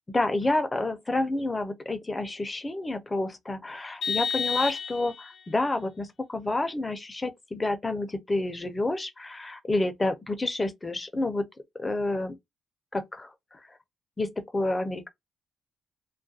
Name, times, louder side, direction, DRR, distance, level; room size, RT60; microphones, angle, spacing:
voice 1, 0.1-11.5 11.7-12.3 12.9-13.6 14.2-15.1, left 2 dB, 20° left, 0.5 m, -29 dB
Vehicle horn car horn honking, 4.0-5.4, left 6 dB, 70° left, 0.8 m, -30 dB
2.4 x 2.2 x 2.6 m
cardioid pair, 85°, 0 cm